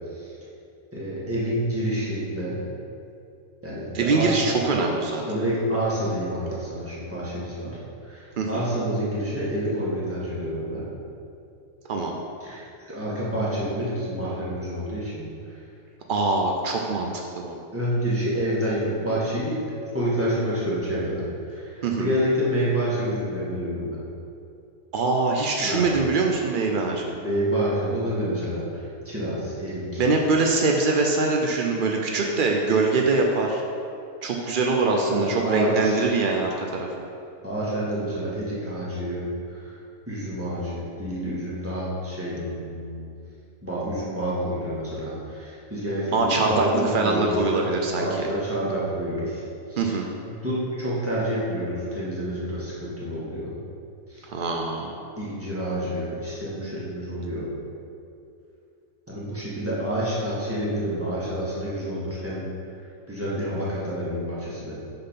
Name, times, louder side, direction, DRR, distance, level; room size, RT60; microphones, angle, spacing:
voice 1, 0.9-2.6 3.6-4.3 5.3-7.7 8.0-10.9 12.4-15.6 17.7-19.6 19.9-24.0 25.6-25.9 27.1-30.0 34.3-34.5 35.1-36.0 37.4-39.7 40.1-43.0 43.6-49.4 49.7-49.9 50.2-53.6 54.1-54.3 55.2-57.5 59.1-62.4 63.1-64.8, right 1 dB, 10° right, -8 dB, 1.5 m, -28 dB
voice 2, 3.9-5.2 8.4-8.6 11.9-12.2 16.1-17.6 21.8-22.1 24.9-27.1 30.0-33.6 34.2-36.9 46.1-48.3 49.8-50.1 54.3-55.0, right 3 dB, 85° right, 1 dB, 0.4 m, -23 dB
6.9 x 3.9 x 5.7 m, 2.6 s
omnidirectional pair, 1.5 m